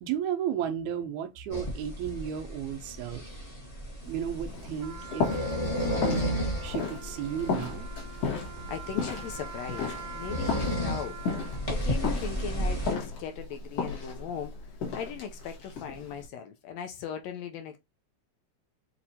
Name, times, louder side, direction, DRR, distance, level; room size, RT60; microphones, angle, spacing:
voice 1, 0.0-3.3 4.1-5.4 6.0-7.9, right 9 dB, 85° right, 2.1 m, -34 dB
sound 1, 1.5-12.9, equal, 20° left, 0.8 m, -34 dB
sound 2, 4.0-16.3, left 5 dB, 60° left, 2.6 m, -35 dB
Trumpet, 4.8-11.8, right 6 dB, 65° right, 1.0 m, -45 dB
voice 2, 8.3-11.2 11.7-17.8, left 8 dB, 75° left, 1.8 m, -39 dB
6.0 x 2.9 x 2.7 m
omnidirectional pair, 3.3 m